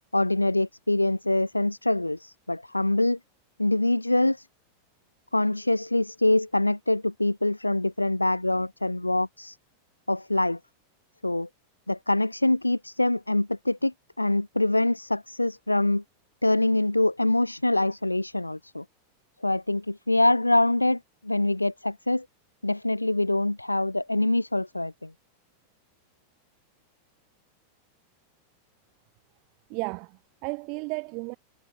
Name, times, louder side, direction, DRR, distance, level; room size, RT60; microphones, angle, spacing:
voice 1, 0.1-3.2 3.6-4.5 5.3-9.6 10.1-10.6 11.2-11.5 11.9-16.0 16.4-18.8 19.4-22.3 22.6-25.1, left 2 dB, 85° left, 1.7 m, -24 dB
voice 2, 29.7-31.4, right 33 dB, 45° right, 7.5 m, -34 dB
figure-of-eight pair, 90°, 0 cm